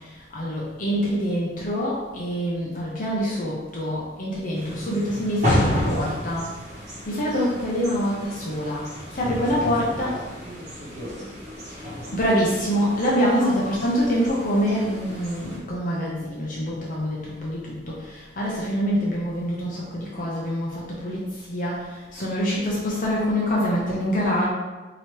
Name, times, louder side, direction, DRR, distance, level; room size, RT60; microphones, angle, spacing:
voice 1, 0.3-6.5 7.1-8.9 9.1-10.2 11.7-24.5, equal, 45° left, -5 dB, 0.7 m, -25 dB
sound 1, 4.5-15.6, left 1 dB, 40° right, 1.2 m, -31 dB
voice 2, 9.0-11.7, right 1 dB, 60° right, -7 dB, 1.0 m, -42 dB
3.0 x 2.9 x 4.5 m, 1.2 s
head